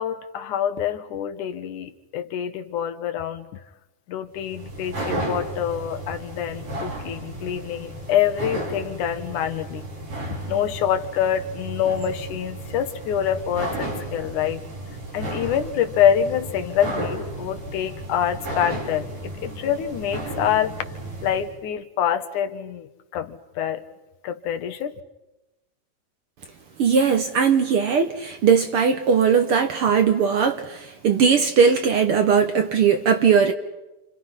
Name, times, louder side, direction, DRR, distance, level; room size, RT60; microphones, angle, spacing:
voice 1, 0.0-3.5 4.1-9.9 10.5-14.6 15.1-20.8 21.2-23.8 24.2-25.0, left 9 dB, 80° left, 2.7 m, -26 dB
sound 1, 4.4-21.5, right 1 dB, 85° right, 8.2 m, -33 dB
voice 2, 26.8-33.5, right 6 dB, 60° right, 1.6 m, -19 dB
29.5 x 27.5 x 5.7 m
omnidirectional pair, 3.5 m